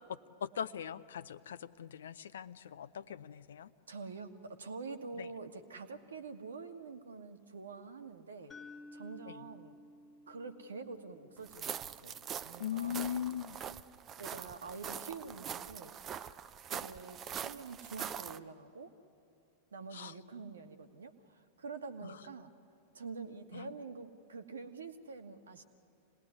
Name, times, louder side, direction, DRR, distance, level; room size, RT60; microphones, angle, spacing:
voice 1, 0.1-3.7 5.2-5.3 9.3-9.4 12.6-13.6 19.9-20.1 23.5-23.7, left 9 dB, 65° left, 15 dB, 0.7 m, -40 dB
voice 2, 3.9-8.5 8.9-9.8 10.3-13.1 14.2-16.0 16.7-18.9 19.7-22.5 22.9-25.6, right 4 dB, 70° right, 7 dB, 1.6 m, -46 dB
sound 1, 8.5-12.6, left 2 dB, 20° left, 1.7 m, -55 dB
sound 2, 11.5-18.4, right 8 dB, 30° right, 0.7 m, -43 dB
26.5 x 19.5 x 9.7 m, 2.7 s
figure-of-eight pair, 90°, 0 cm